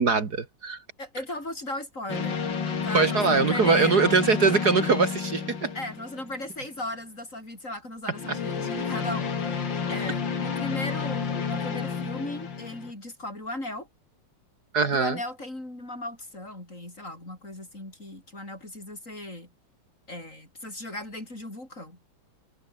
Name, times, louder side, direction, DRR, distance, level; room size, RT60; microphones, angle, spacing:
voice 1, 0.0-0.8 2.9-5.7 14.7-15.2, right 4 dB, 55° right, 2.5 m, -22 dB
voice 2, 1.0-2.4 2.8-4.0 5.7-13.9 14.9-19.5 20.1-22.0, left 1 dB, 40° left, 8.1 m, -37 dB
sound 1, 2.1-6.6 8.1-12.9, left 6 dB, 65° left, 3.1 m, -30 dB
omnidirectional pair, 2.1 m